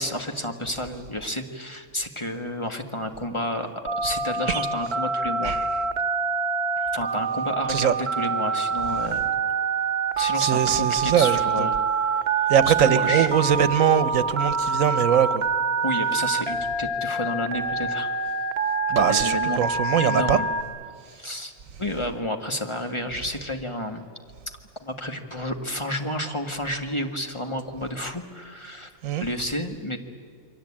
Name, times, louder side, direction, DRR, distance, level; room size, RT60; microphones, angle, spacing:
voice 1, 0.0-3.7 4.0-5.6 6.9-9.3 10.2-11.8 12.4-13.3 15.8-18.1 19.0-19.6 20.0-20.5 21.1-21.5 21.8-24.0 24.8-28.9 29.2-30.0, left 1 dB, 20° left, 1.7 m, -30 dB
Telephone, 3.9-20.6, right 4 dB, 50° right, 1.4 m, -26 dB
voice 2, 10.4-11.7 12.5-15.4 18.9-20.4 29.0-29.2, right 8 dB, 80° right, 1.3 m, -22 dB
28.0 x 23.5 x 8.7 m
omnidirectional pair, 1.4 m